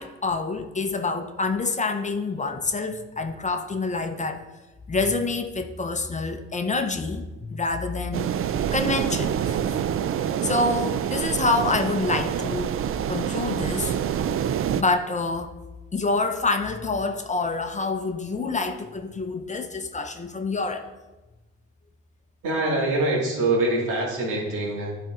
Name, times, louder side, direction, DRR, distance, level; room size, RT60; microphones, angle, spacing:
voice 1, 0.0-4.4 4.9-8.3 8.7-9.8 10.4-12.8 13.1-13.9 14.8-15.5 15.9-20.9, left 3 dB, 25° left, 7 dB, 0.6 m, -27 dB
sound 1, 8.1-14.8, right 9 dB, 45° right, 0.4 m, -26 dB
voice 2, 22.4-24.9, right 2 dB, 85° right, -4 dB, 2.5 m, -24 dB
11.0 x 4.4 x 3.7 m, 1.1 s
cardioid pair, 90°, 30 cm